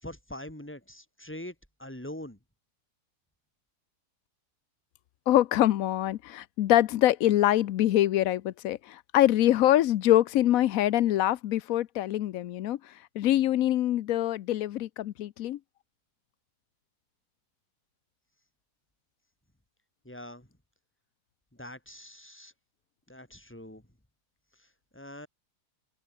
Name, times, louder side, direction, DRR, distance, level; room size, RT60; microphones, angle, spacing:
voice 1, 0.0-2.4 20.0-20.5 21.5-22.5 23.1-23.9 24.5-25.3, left 1 dB, 5° left, 3.9 m, -43 dB
voice 2, 5.3-12.8 13.1-15.6, left 13 dB, 70° left, 1.0 m, -24 dB
omnidirectional pair, 1.7 m